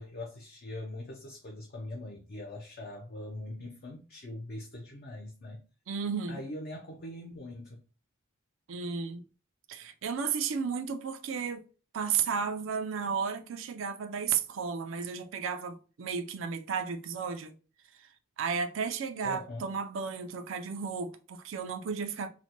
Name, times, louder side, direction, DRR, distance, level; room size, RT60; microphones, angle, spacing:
voice 1, 0.0-5.6 6.3-7.8 19.2-19.7, left 1 dB, 50° left, 0.5 m, -42 dB
voice 2, 5.9-6.4 8.7-9.2 9.7-11.6 11.9-17.5 18.0-18.1 18.4-22.3, right 6 dB, 75° right, 0.4 m, -33 dB
4.0 x 2.1 x 2.9 m
head